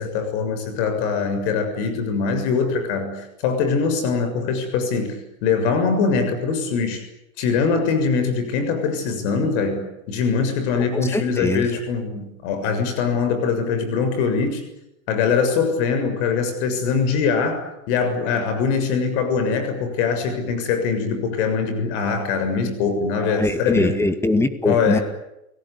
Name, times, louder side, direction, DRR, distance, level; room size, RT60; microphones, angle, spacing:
voice 1, 0.0-7.0 7.4-14.6 15.1-24.0 24.7-25.0, left 5 dB, 55° left, 8 dB, 6.9 m, -22 dB
voice 2, 10.9-11.7 23.2-25.0, left 2 dB, 5° left, 10 dB, 2.1 m, -22 dB
30.0 x 18.5 x 9.9 m, 0.87 s
supercardioid pair, 135°, 41 cm